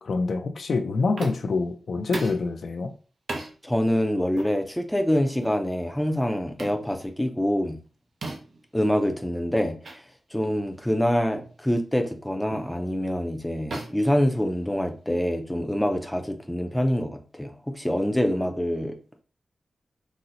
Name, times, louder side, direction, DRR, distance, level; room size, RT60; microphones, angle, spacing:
voice 1, 0.0-2.9, left 3 dB, 70° left, 0.4 m, -26 dB
sound 1, 1.2-1.6 2.1-2.5 3.3-3.5 4.3-4.5 5.4-5.6 6.6-6.8 8.2-8.6 9.8-10.0 10.4-10.6 11.3-11.6 12.5-12.7 13.7-14.9, right 2 dB, 85° right, 0.6 m, -36 dB
voice 2, 3.6-7.8 8.7-10.0 10.3-19.0, equal, 5° left, 0.4 m, -25 dB
4.0 x 2.0 x 2.6 m
wide cardioid pair, 130°, 0 cm